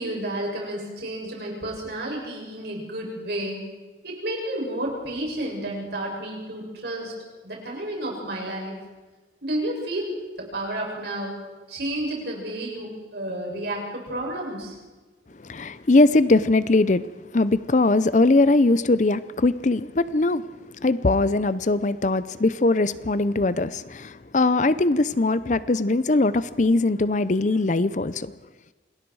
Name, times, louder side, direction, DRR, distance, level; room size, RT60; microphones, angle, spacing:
voice 1, 0.0-3.6 4.0-7.1 7.4-8.8 9.4-11.4 11.7-14.8, right 1 dB, 60° right, 7.5 m, -31 dB
voice 2, 15.4-17.1 17.3-20.4 20.8-28.4, left 2 dB, 40° left, 0.6 m, -21 dB
28.0 x 20.0 x 4.8 m
head